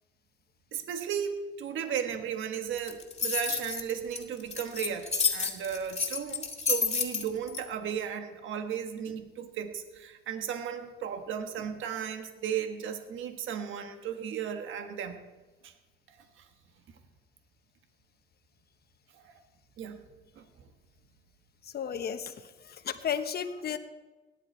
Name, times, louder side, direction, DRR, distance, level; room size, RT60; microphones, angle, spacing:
voice 1, 0.7-15.2 15.6-15.7 16.4-16.5 19.2-19.3 19.8-20.0 20.4-20.5, right 8 dB, 80° right, 6 dB, 1.4 m, -35 dB
sound 1, 2.8-7.6, left 5 dB, 30° left, 2.2 m, -30 dB
voice 2, 21.7-22.3 22.8-23.8, left 8 dB, 50° left, 8 dB, 1.1 m, -32 dB
18.0 x 11.0 x 4.4 m, 1.2 s
cardioid pair, 90°, 20 cm